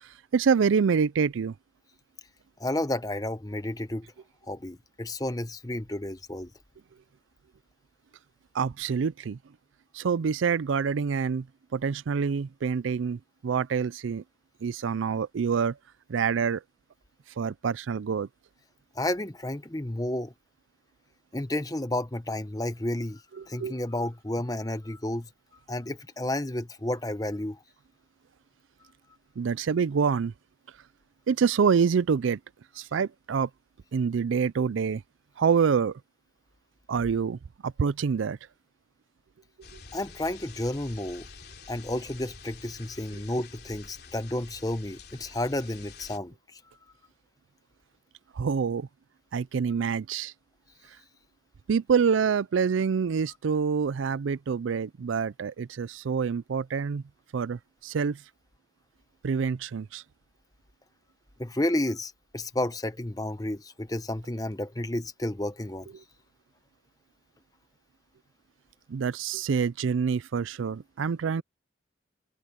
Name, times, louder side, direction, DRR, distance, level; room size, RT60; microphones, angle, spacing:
voice 1, 0.0-1.5 8.5-9.4 9.9-11.5 11.7-14.2 14.6-15.8 16.1-16.6 17.4-18.3 23.4-23.8 29.4-30.3 31.3-32.4 32.8-33.5 33.9-35.0 35.4-36.0 36.9-38.4 48.3-48.9 49.3-50.3 51.7-57.0 57.3-58.2 59.2-60.0 68.9-71.4, right 6 dB, 85° right, 0.4 m, -26 dB
voice 2, 2.6-4.1 4.5-6.5 18.9-20.3 21.3-25.3 25.7-27.6 39.9-41.3 41.7-46.6 61.4-65.9, left 1 dB, 20° left, 1.0 m, -31 dB
sound 1, 39.6-46.2, left 4 dB, 55° left, 3.6 m, -48 dB
open air
head